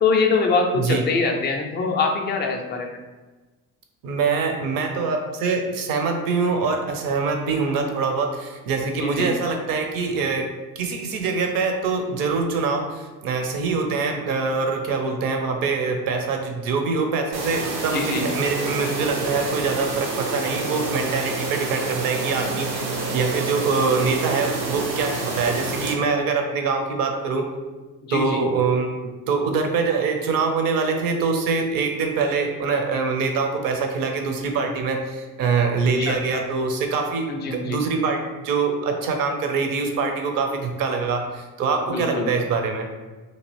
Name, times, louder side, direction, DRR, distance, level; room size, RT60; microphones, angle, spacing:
voice 1, 0.0-3.0 9.0-9.3 17.9-18.3 28.0-28.4 36.0-36.4 37.3-37.8 41.9-42.3, left 4 dB, 25° left, 2 dB, 0.4 m, -23 dB
voice 2, 4.0-10.5 10.8-27.4 28.1-42.9, right 4 dB, 45° right, 4 dB, 0.7 m, -24 dB
sound 1, 17.3-25.9, right 3 dB, 75° right, 0.9 m, -28 dB
2.9 x 2.4 x 3.1 m, 1.3 s
hypercardioid pair, 60°, 49 cm